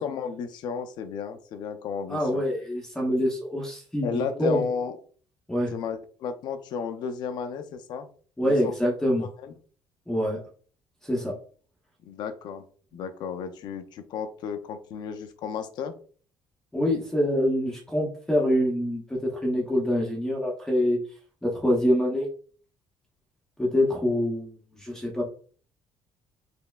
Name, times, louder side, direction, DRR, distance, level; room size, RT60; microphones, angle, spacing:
voice 1, 0.0-2.4 4.0-5.0 5.7-8.1 8.4-8.7 9.2-9.5 12.1-12.6 12.9-15.9, left 6 dB, 60° left, 9 dB, 0.5 m, -33 dB
voice 2, 2.1-4.6 5.5-5.7 8.4-9.3 10.1-10.4 11.0-11.4 16.7-21.0 21.4-22.3 23.6-25.2, equal, 5° left, -2 dB, 0.6 m, -25 dB
4.2 x 3.1 x 2.3 m, 0.43 s
cardioid pair, 175°, 9 cm